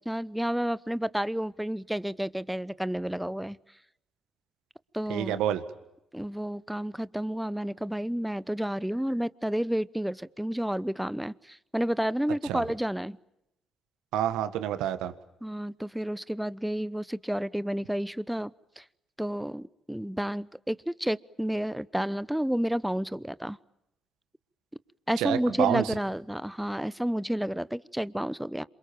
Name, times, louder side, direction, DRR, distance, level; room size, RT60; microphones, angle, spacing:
voice 1, 0.0-3.6 4.9-5.4 6.1-13.2 15.4-18.5 18.8-18.9 19.2-23.6 25.1-28.6, equal, 5° right, 18 dB, 0.9 m, -30 dB
voice 2, 5.1-5.6 12.5-12.6 14.1-15.1 25.2-25.8, right 11 dB, 75° right, 11 dB, 1.5 m, -28 dB
28.0 x 26.5 x 7.4 m, 0.85 s
hypercardioid pair, 45°, 0 cm